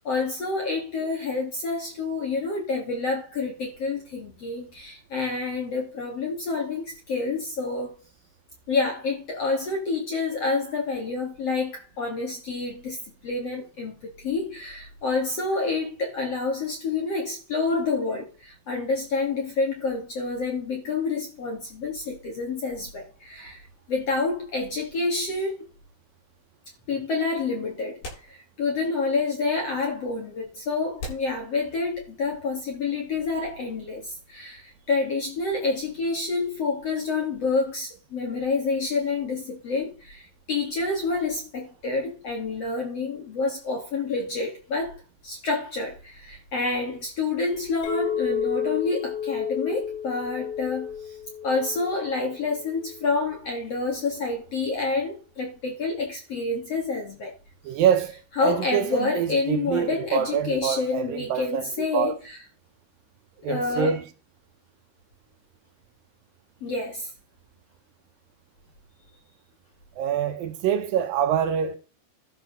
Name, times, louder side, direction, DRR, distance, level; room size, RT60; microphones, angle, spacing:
voice 1, 0.0-7.9 8.7-13.0 13.2-25.6 26.9-28.0 28.3-44.9 45.2-50.9 51.4-57.3 58.4-62.4 63.5-63.9 66.6-67.1, left 3 dB, 45° left, 3.1 m, -28 dB
sound 1, 26.2-26.3 27.4-27.5 28.0-28.9 29.3-29.4 30.1-30.2 31.0-32.2, left 1 dB, 70° left, 9.7 m, -41 dB
Chink clink, 47.8-53.1, left 8 dB, 85° left, 6.0 m, -31 dB
voice 2, 57.6-58.1 58.4-62.2 63.4-64.0 70.0-71.8, right 8 dB, 70° right, 2.5 m, -25 dB
13.0 x 5.4 x 6.3 m
omnidirectional pair, 4.6 m